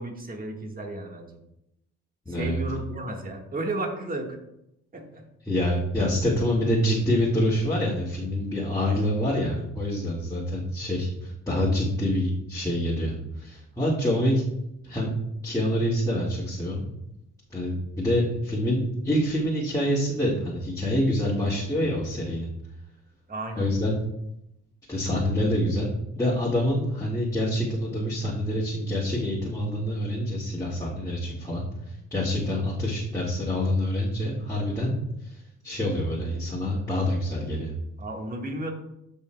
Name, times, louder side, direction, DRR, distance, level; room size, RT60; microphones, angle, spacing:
voice 1, 0.0-1.4 2.3-4.4 4.9-5.3 8.7-9.1 23.3-23.7 38.0-38.7, right 2 dB, 30° right, 2 dB, 1.5 m, -33 dB
voice 2, 2.3-2.6 5.5-14.4 14.8-15.1 15.4-16.8 17.5-18.8 19.0-22.5 23.6-23.9 24.9-25.9 26.2-31.6 32.1-34.9 35.2-37.7, left 1 dB, 10° left, -7 dB, 1.9 m, -26 dB
14.0 x 5.5 x 2.2 m, 0.82 s
cardioid pair, 90°, 30 cm